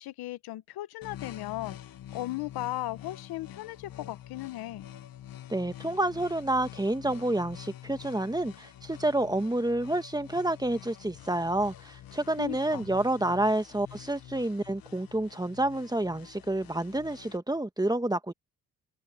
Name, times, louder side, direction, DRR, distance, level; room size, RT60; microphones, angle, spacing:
voice 1, 0.0-1.8 2.1-4.9 12.4-12.9, left 16 dB, 90° left, 1.0 m, -36 dB
sound 1, 1.0-17.4, left 11 dB, 70° left, 1.3 m, -47 dB
voice 2, 5.5-18.3, right 1 dB, 10° right, 1.7 m, -29 dB
open air
cardioid pair, 65°, 36 cm